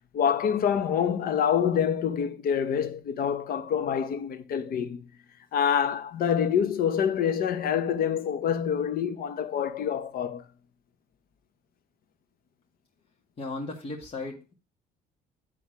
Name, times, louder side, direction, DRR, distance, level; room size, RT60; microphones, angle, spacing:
voice 1, 0.1-5.1 5.5-10.4, left 8 dB, 60° left, 0.9 m, -26 dB
voice 2, 13.4-14.5, left 3 dB, 35° left, 1.9 m, -36 dB
9.6 x 3.6 x 4.6 m
cardioid pair, 110°, 17 cm